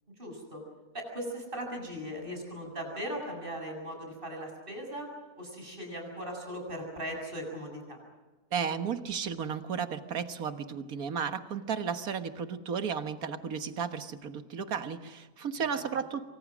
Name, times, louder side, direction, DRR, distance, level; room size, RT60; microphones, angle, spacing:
voice 1, 0.2-0.6 0.9-5.1 5.4-8.0 15.7-15.8, equal, 35° right, 2 dB, 7.7 m, -38 dB
voice 2, 8.5-16.2, right 6 dB, 75° right, 9 dB, 1.9 m, -34 dB
28.5 x 24.5 x 6.2 m, 1.2 s
omnidirectional pair, 1.6 m